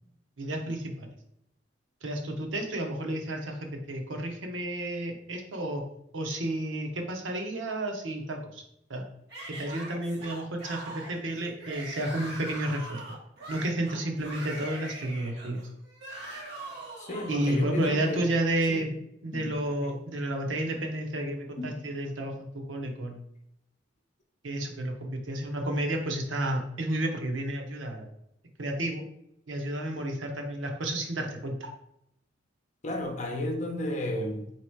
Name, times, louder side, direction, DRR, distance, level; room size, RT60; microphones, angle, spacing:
voice 1, 0.4-1.1 2.0-5.8 6.1-8.6 8.9-9.0 9.5-13.0 13.5-15.6 17.3-18.9 19.2-23.3 24.4-28.1 28.6-29.0 29.5-31.7, right 1 dB, 90° right, 2 dB, 0.8 m, -31 dB
Yell / Screaming, 9.3-17.6, right 1 dB, 60° right, 1.5 m, -42 dB
voice 2, 17.0-18.2 18.7-18.9 19.3-19.5 19.8-19.9 21.6-21.7 32.8-34.5, left 1 dB, 40° left, 2 dB, 0.8 m, -33 dB
3.1 x 2.9 x 4.5 m, 0.78 s
head